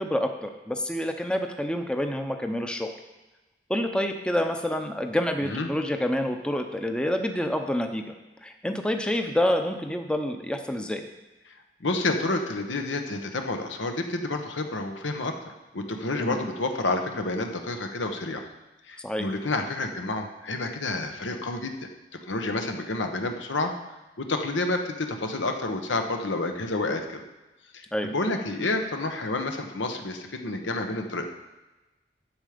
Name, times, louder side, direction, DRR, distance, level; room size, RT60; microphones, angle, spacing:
voice 1, 0.0-2.9 3.7-8.1 8.4-11.0 16.2-16.4 19.0-19.3 27.9-28.1, left 1 dB, 5° left, 5 dB, 0.6 m, -28 dB
voice 2, 11.8-15.3 15.7-18.4 18.9-21.9 22.3-23.7 24.2-27.2 27.7-31.2, left 2 dB, 90° left, 5 dB, 1.1 m, -29 dB
11.5 x 7.3 x 5.1 m, 1.1 s
head